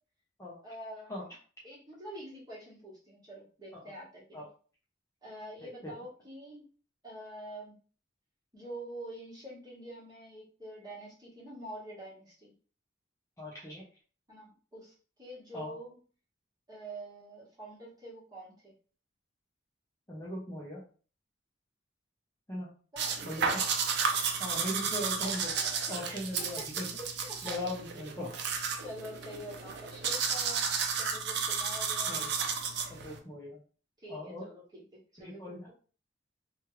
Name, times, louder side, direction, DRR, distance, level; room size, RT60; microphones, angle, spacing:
voice 1, 0.6-1.2 1.6-4.4 5.2-6.7 7.0-7.7 8.5-12.5 14.3-14.9 15.2-16.0 16.7-18.7 22.9-23.2 25.5-25.7 26.1-26.2 26.6-26.7 27.0-27.6 28.8-30.7 31.0-32.3 34.0-34.8 35.1-35.7, right 1 dB, 20° right, -6 dB, 1.4 m, -46 dB
voice 2, 5.6-5.9 13.4-13.8 15.5-15.7 20.1-20.8 22.5-22.7 23.2-23.7 24.4-25.5 25.9-26.9 27.4-28.3 32.1-32.3 32.9-33.6 34.1-34.4 35.2-35.7, left 1 dB, 15° left, -5 dB, 0.6 m, -39 dB
sound 1, 23.0-33.2, right 6 dB, 60° right, 0.5 m, -33 dB
3.1 x 2.3 x 3.1 m, 0.40 s
head